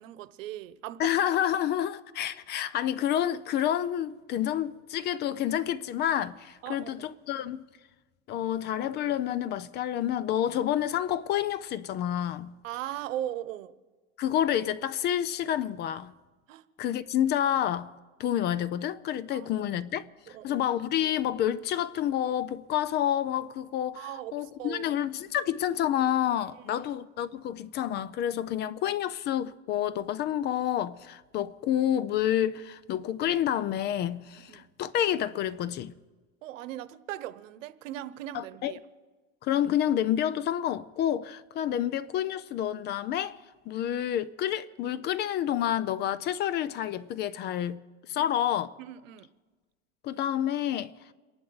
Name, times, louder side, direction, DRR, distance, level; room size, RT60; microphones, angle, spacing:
voice 1, 0.0-1.1 6.6-6.9 12.6-13.7 16.5-16.6 19.3-19.5 20.3-20.6 24.0-24.9 26.6-26.9 34.5-34.6 36.4-38.8 48.2-48.3 48.8-49.3, right 12 dB, 90° right, 1.0 m, -39 dB
voice 2, 1.0-7.6 8.3-12.5 14.2-16.1 16.8-17.9 18.2-35.9 38.3-38.7 39.4-43.4 43.7-47.8 48.1-48.7 50.0-50.9, left 11 dB, 30° left, 0.4 m, -29 dB
29.0 x 11.0 x 4.0 m
supercardioid pair, 145°, 38 cm